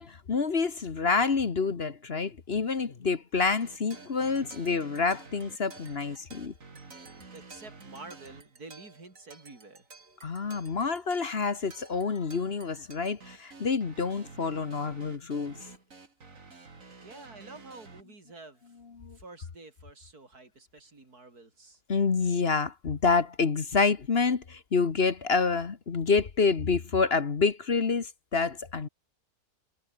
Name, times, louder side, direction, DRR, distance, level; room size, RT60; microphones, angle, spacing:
voice 1, 0.0-6.5 10.2-15.7 19.0-19.2 21.9-28.9, left 4 dB, 45° left, 1.4 m, -28 dB
sound 1, 3.6-18.0, right 4 dB, 60° right, 3.3 m, -51 dB
voice 2, 7.3-9.9 17.0-18.8 19.1-21.8, right 3 dB, 85° right, 5.0 m, -49 dB
omnidirectional pair, 1.6 m